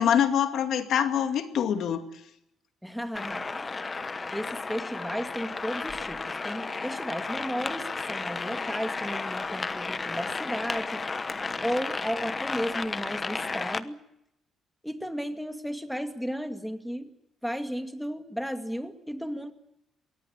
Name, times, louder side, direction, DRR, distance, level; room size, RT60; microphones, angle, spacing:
voice 1, 0.0-2.0, left 9 dB, 70° left, 7 dB, 2.3 m, -24 dB
voice 2, 2.8-3.8 4.3-11.1 11.6-14.0 14.8-17.1 17.4-19.5, equal, ahead, 7 dB, 2.2 m, -34 dB
sound 1, 3.2-13.8, left 4 dB, 30° left, 1.1 m, -33 dB
23.0 x 17.5 x 9.0 m, 0.81 s
cardioid pair, 90°, 0 cm